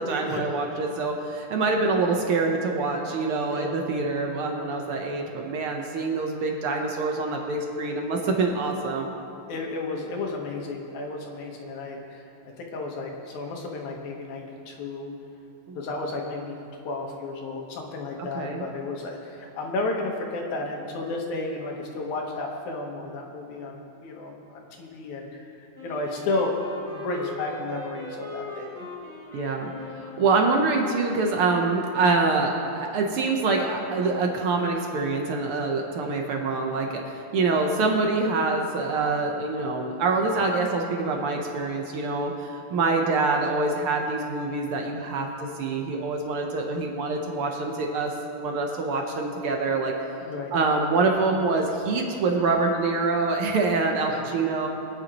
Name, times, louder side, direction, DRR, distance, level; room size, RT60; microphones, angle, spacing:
voice 1, 0.0-9.1 15.7-15.8 18.3-18.6 29.3-29.7 30.0-45.3 45.6-49.9 50.5-54.7, right 3 dB, 75° right, 2 dB, 1.2 m, -25 dB
voice 2, 9.5-12.3 12.6-15.1 15.7-25.5 25.8-26.6 26.9-28.9 50.2-50.5 54.1-54.2, left 2 dB, 70° left, 0 dB, 2.6 m, -32 dB
Wind instrument woodwind instrument, 25.7-30.8, left 2 dB, 10° right, 1.5 m, -40 dB
23.0 x 9.6 x 3.0 m, 2.7 s
omnidirectional pair, 3.7 m